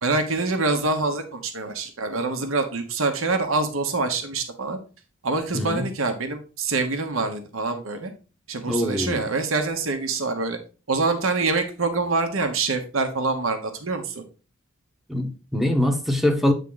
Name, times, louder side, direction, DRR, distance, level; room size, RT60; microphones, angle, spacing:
voice 1, 0.0-4.8 5.2-8.1 8.5-10.6 10.9-14.2, right 3 dB, 65° right, 1.1 m, -25 dB
voice 2, 5.5-5.9 8.7-9.2 15.1-16.5, left 1 dB, ahead, 0.8 m, -23 dB
8.5 x 3.7 x 3.8 m
head